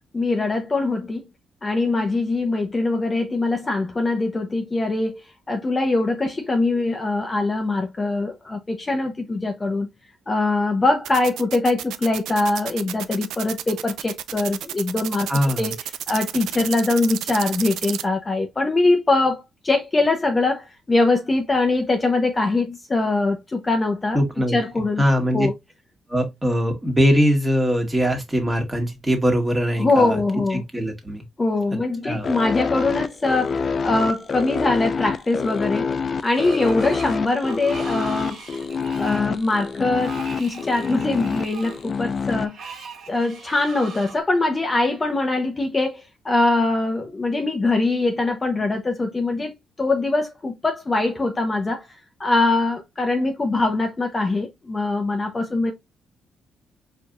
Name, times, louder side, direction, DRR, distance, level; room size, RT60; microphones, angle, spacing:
voice 1, 0.1-1.3 1.6-5.2 5.5-9.9 10.3-15.3 15.6-15.8 16.1-24.2 24.5-25.0 25.3-25.5 29.8-30.6 31.4-35.9 36.2-38.4 39.0-42.6 43.1-51.8 52.2-55.7, left 2 dB, 25° left, 0.9 m, -22 dB
sound 1, 11.0-18.0, right 12 dB, 85° right, 0.4 m, -31 dB
voice 2, 15.3-15.7 24.1-24.6 25.0-25.5 26.1-30.2 30.5-31.2 32.0-32.3, equal, 15° right, 1.7 m, -21 dB
sound 2, 32.2-42.5, left 5 dB, 40° left, 0.4 m, -27 dB
Screech, 36.2-44.2, right 6 dB, 65° right, 1.4 m, -41 dB
4.7 x 3.4 x 2.5 m
cardioid pair, 90°, 0 cm